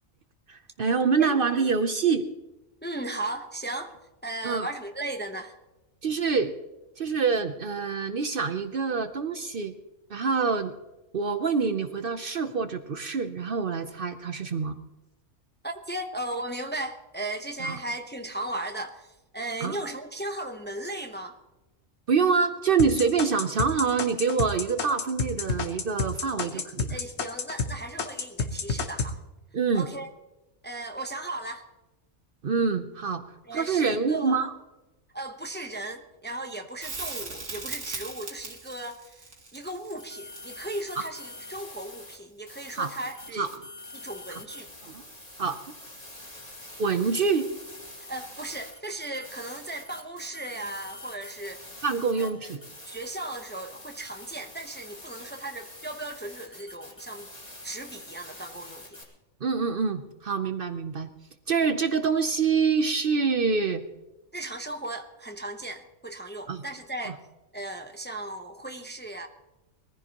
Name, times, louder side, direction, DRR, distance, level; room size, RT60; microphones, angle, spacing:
voice 1, 0.5-2.3 4.4-4.7 6.0-6.5 7.0-9.7 10.1-10.7 11.1-14.8 17.6-17.8 19.6-19.8 22.1-27.0 29.5-29.9 32.4-33.2 33.5-34.5 41.0-41.1 42.7-42.9 43.3-43.5 44.3-44.4 44.9-45.0 45.4-45.6 46.8-47.5 51.8-52.6 59.4-61.1 61.5-63.8 66.5-66.6 67.1-67.2, right 5 dB, 55° right, 9 dB, 0.9 m, -26 dB
voice 2, 2.8-4.0 4.2-5.5 15.6-21.4 26.4-26.6 26.9-29.2 29.7-30.1 30.6-31.7 33.4-34.4 35.1-39.3 39.5-43.5 43.9-44.9 48.0-51.6 52.2-52.5 52.9-57.3 57.6-59.0 64.3-67.2 67.5-69.3, right 1 dB, 10° left, 5 dB, 0.8 m, -36 dB
sound 1, 22.8-27.7 28.0-29.1, left 4 dB, 65° left, 1.3 m, -29 dB
Crackle, 36.8-41.9 44.7-44.8, right 3 dB, 80° right, 2.3 m, -39 dB
sound 2, 40.0-42.2 42.5-59.0, left 1 dB, 30° left, 2.6 m, -45 dB
22.0 x 15.0 x 3.0 m, 1.0 s
omnidirectional pair, 1.2 m